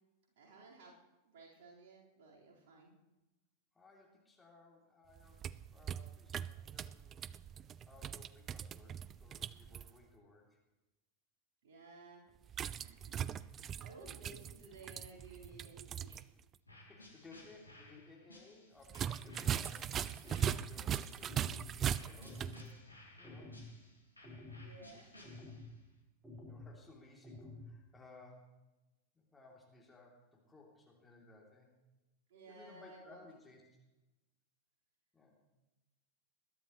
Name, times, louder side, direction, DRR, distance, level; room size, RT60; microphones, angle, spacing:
voice 1, 0.4-0.9 1.2-2.9 11.6-12.2 12.6-16.3 24.6-25.3 32.3-33.3, right 3 dB, 55° right, -4 dB, 4.3 m, -56 dB
voice 2, 3.7-5.4 5.7-7.3 7.9-10.6 16.8-22.9 23.1-23.6 26.5-28.6 29.1-31.7 32.4-33.6 35.1-35.3, left 3 dB, 10° left, -2 dB, 2.9 m, -60 dB
sound 1, 5.2-9.9 12.5-16.2 16.5-16.6 18.8-22.6, right 9 dB, 25° right, 0.4 m, -40 dB
sound 2, 16.7-21.5 21.9-25.9, left 1 dB, 85° left, 2.6 m, -58 dB
sound 3, 19.2-19.7 20.2-20.6 21.2-21.6 22.2-22.6 23.2-23.6 24.2-24.6 25.2-25.7 26.2-26.6 27.2-27.6, left 2 dB, 10° right, 4.7 m, -50 dB
21.0 x 12.0 x 3.1 m, 1.0 s
figure-of-eight pair, 90°, 0 cm